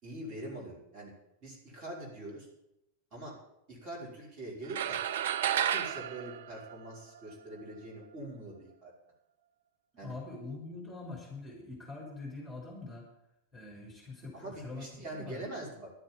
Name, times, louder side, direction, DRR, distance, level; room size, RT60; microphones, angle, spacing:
voice 1, 0.0-1.1 1.4-2.5 3.1-3.3 3.7-5.0 5.6-8.9 10.0-10.1 14.3-15.9, right 1 dB, 35° right, -3 dB, 5.3 m, -43 dB
sound 1, 4.7-7.3, right 10 dB, 60° right, 0.6 m, -32 dB
voice 2, 9.9-13.1 13.5-14.9 15.1-15.4, left 3 dB, 5° right, -3 dB, 4.2 m, -44 dB
12.0 x 7.5 x 9.0 m, 0.84 s
figure-of-eight pair, 90°, 0 cm